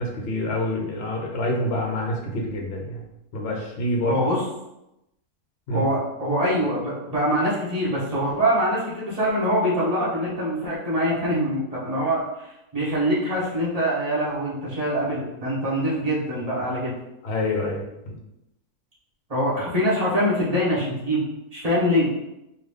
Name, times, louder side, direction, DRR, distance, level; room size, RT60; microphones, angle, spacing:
voice 1, 0.0-3.0 3.3-4.2 5.7-5.9 17.2-18.1, left 1 dB, 50° left, 0 dB, 0.8 m, -27 dB
voice 2, 4.1-4.4 5.7-16.9 19.3-21.2 21.5-22.1, equal, 25° right, -7 dB, 1.2 m, -24 dB
3.8 x 2.6 x 3.2 m, 0.88 s
omnidirectional pair, 1.7 m